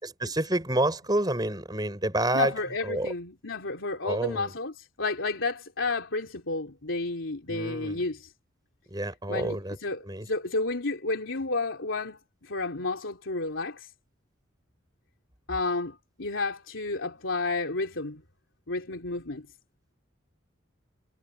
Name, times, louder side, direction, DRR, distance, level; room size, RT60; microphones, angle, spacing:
voice 1, 0.0-2.5 2.8-3.1 4.0-4.5 7.5-8.0 8.9-9.8 10.1-10.3, right 1 dB, 20° right, 5.2 m, -28 dB
voice 2, 2.3-8.3 9.3-13.9 15.5-18.2 18.7-19.5, left 3 dB, 90° left, 3.2 m, -31 dB
head